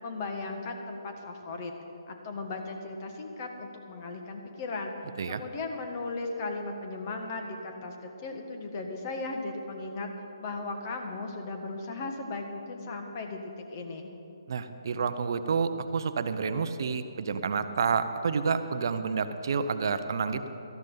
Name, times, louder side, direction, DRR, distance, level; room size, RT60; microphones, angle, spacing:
voice 1, 0.0-1.7 2.1-4.9 5.3-10.1 10.4-13.4 13.7-14.1, left 3 dB, 35° left, 4 dB, 1.7 m, -36 dB
voice 2, 14.5-20.5, right 5 dB, 50° right, 10 dB, 0.7 m, -29 dB
18.0 x 13.5 x 4.0 m, 2.8 s
figure-of-eight pair, 140°, 3 cm